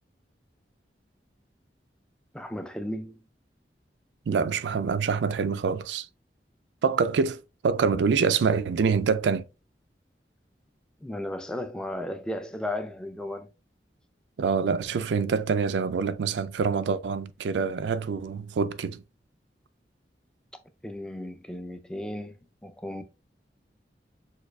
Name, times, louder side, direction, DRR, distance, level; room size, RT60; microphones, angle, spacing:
voice 1, 2.3-3.2 11.0-13.5 20.8-23.0, left 1 dB, 5° left, 0.3 m, -35 dB
voice 2, 4.3-6.1 6.8-9.4 14.4-19.0, right 5 dB, 85° right, 0.4 m, -26 dB
6.4 x 2.3 x 2.3 m
head